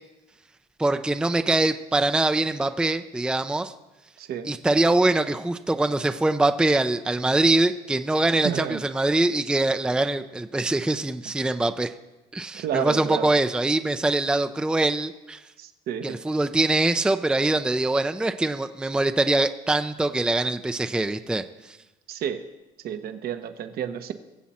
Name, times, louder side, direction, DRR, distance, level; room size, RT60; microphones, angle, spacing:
voice 1, 0.8-3.7 4.4-11.9 12.3-15.4 16.0-21.8, right 2 dB, 5° right, 8 dB, 0.5 m, -23 dB
voice 2, 4.2-4.5 8.4-8.8 12.5-13.3 15.6-16.2 22.1-22.4 22.8-24.1, right 9 dB, 65° right, 8 dB, 1.0 m, -30 dB
22.0 x 7.4 x 4.3 m, 1.0 s
cardioid pair, 110°, 17 cm